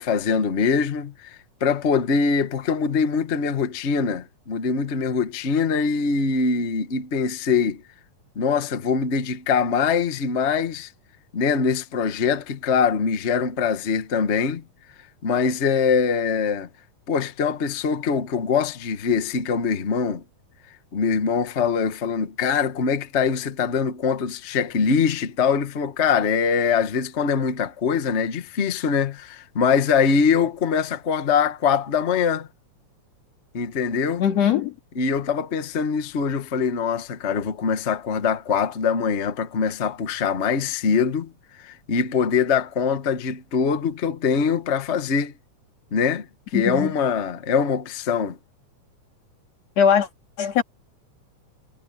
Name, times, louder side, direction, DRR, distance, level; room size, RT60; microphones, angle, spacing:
voice 1, 0.0-7.8 8.3-10.9 11.3-14.6 15.2-16.7 17.1-20.2 20.9-32.5 33.5-34.2 35.0-41.3 41.6-45.3 45.9-46.3 46.5-48.4, left 6 dB, 80° left, 0.6 m, -23 dB
voice 2, 34.2-34.7 46.5-46.9 49.8-50.1 50.4-50.6, left 8 dB, 55° left, 3.2 m, -20 dB
omnidirectional pair, 3.6 m